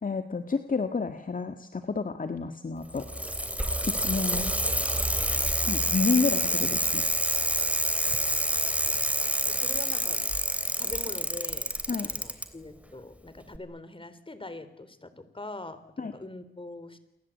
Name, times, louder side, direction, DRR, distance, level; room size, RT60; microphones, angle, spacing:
voice 1, 0.0-3.1 3.9-4.5 5.6-7.1 11.9-12.4 16.0-16.1, left 4 dB, 45° left, 8 dB, 1.8 m, -30 dB
Bicycle, 2.8-12.4 13.5-13.6, right 1 dB, 5° right, 3.3 m, -28 dB
voice 2, 9.5-10.2 10.8-11.7 12.0-17.0, left 2 dB, 25° left, 13 dB, 3.7 m, -42 dB
29.0 x 23.5 x 8.5 m, 0.85 s
wide cardioid pair, 80°, 19 cm